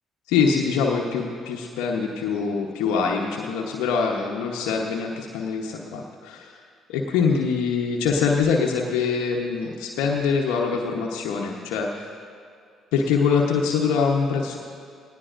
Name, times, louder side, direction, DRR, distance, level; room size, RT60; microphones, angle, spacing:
voice 1, 0.3-6.6 6.9-12.1 12.9-14.6, left 5 dB, 75° left, -1 dB, 1.0 m, -24 dB
18.5 x 18.0 x 2.6 m, 2.3 s
hypercardioid pair, 50°, 0 cm